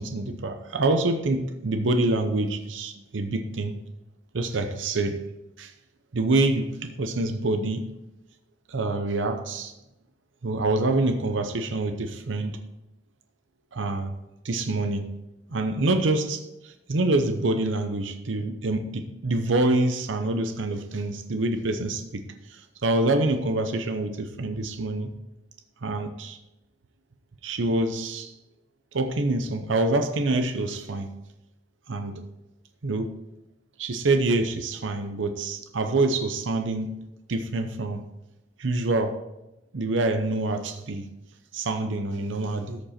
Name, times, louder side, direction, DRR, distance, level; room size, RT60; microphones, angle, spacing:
voice 1, 0.0-3.8 4.3-5.2 5.6-5.7 6.1-7.9 8.7-9.7 10.4-12.6 13.7-14.1 14.4-15.2 15.5-25.1 25.8-26.4 27.4-28.3 28.9-31.2 31.9-32.3 32.8-33.1 33.8-36.9 37.3-38.1 38.6-39.2 39.7-41.1 41.5-42.8, right 2 dB, 85° right, 0.7 m, -26 dB
13.5 x 5.2 x 4.3 m
head